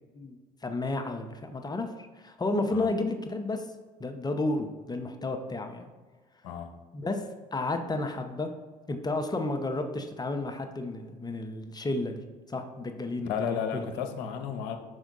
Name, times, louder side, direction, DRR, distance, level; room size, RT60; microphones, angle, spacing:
voice 1, 0.1-1.9 2.2-3.7 4.0-5.9 6.9-8.5 8.9-12.2 12.5-13.8, left 2 dB, 20° left, 6 dB, 0.8 m, -32 dB
voice 2, 13.2-14.8, left 7 dB, 65° left, 6 dB, 0.8 m, -33 dB
6.1 x 4.6 x 3.9 m, 1.4 s
figure-of-eight pair, 55°, 21 cm